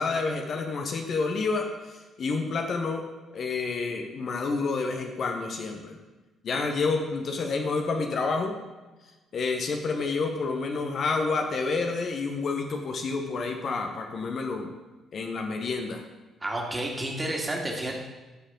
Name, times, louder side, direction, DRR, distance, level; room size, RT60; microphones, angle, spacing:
voice 1, 0.0-3.0 3.3-6.0 6.4-8.5 9.3-14.7 15.1-16.0, left 4 dB, 50° left, 3 dB, 1.1 m, -29 dB
voice 2, 16.4-17.9, right 1 dB, 20° right, 0 dB, 2.4 m, -30 dB
14.0 x 6.5 x 3.9 m, 1.2 s
figure-of-eight pair, 45°, 0 cm